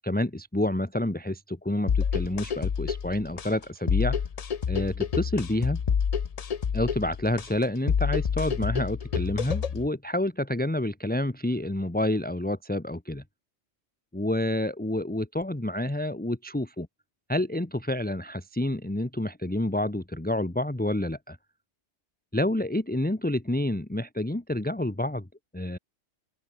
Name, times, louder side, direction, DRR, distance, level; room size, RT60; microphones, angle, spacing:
voice 1, 0.0-4.2 4.7-5.8 6.7-13.2 14.1-16.9 17.3-21.4 22.3-25.3 25.5-25.8, left 1 dB, 10° left, 1.4 m, -28 dB
sound 1, 1.9-9.9, left 7 dB, 40° left, 0.6 m, -28 dB
open air
omnidirectional pair, 1.2 m